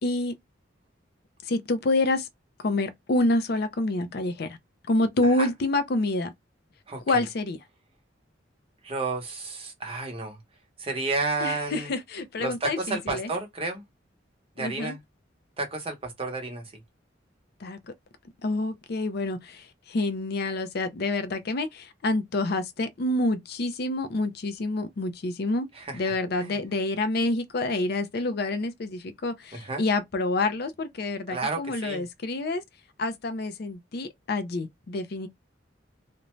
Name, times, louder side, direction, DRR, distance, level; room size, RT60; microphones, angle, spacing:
voice 1, 0.0-0.3 1.5-2.3 2.6-4.6 4.9-6.3 7.1-7.6 11.4-13.3 14.6-14.9 17.6-17.8 18.4-25.7 25.9-32.6 33.0-35.3, left 2 dB, 60° left, 0.5 m, -27 dB
voice 2, 6.9-7.3 8.8-10.4 10.8-11.9 12.4-13.8 14.6-15.0 15.6-16.7 25.7-26.0 26.4-26.6 29.5-29.9 31.3-32.0, right 3 dB, 30° right, 0.8 m, -31 dB
2.5 x 2.1 x 3.0 m
head